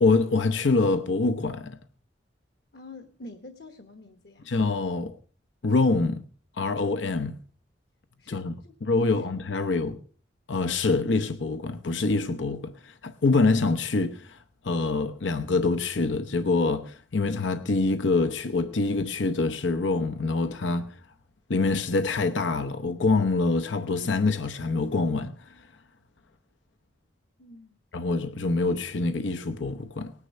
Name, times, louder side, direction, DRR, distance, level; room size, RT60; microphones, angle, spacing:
voice 1, 0.0-1.8 4.5-5.2 5.6-6.2 6.6-7.4 8.3-8.5 8.8-10.0 10.5-21.0 21.5-25.7 27.9-30.1, left 3 dB, 90° left, 0.8 m, -25 dB
voice 2, 2.7-4.5 8.2-9.3 27.4-27.7, left 2 dB, 60° left, 1.1 m, -47 dB
19.0 x 9.9 x 5.4 m
head